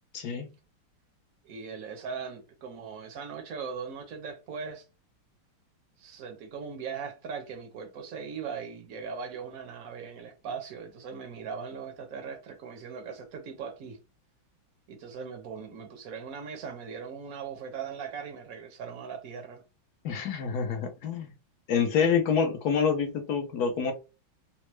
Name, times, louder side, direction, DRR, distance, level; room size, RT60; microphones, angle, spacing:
voice 1, 0.1-0.5 20.0-21.3 21.7-23.9, left 6 dB, 70° left, 0.9 m, -27 dB
voice 2, 1.4-4.8 6.0-14.0 14.9-19.6 22.0-22.1, right 6 dB, 65° right, 0.9 m, -39 dB
4.3 x 2.0 x 3.1 m
omnidirectional pair, 2.3 m